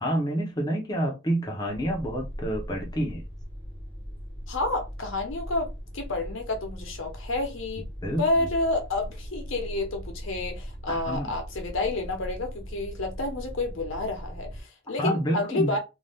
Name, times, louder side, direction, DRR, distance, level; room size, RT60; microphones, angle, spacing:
voice 1, 0.0-3.2 8.0-8.5 10.9-11.3 15.0-15.8, equal, 20° left, 0.6 m, -28 dB
sound 1, 1.7-14.6, equal, 25° right, 1.1 m, -39 dB
voice 2, 4.5-7.9 8.2-15.8, left 2 dB, 70° left, 0.9 m, -29 dB
2.6 x 2.3 x 3.4 m
head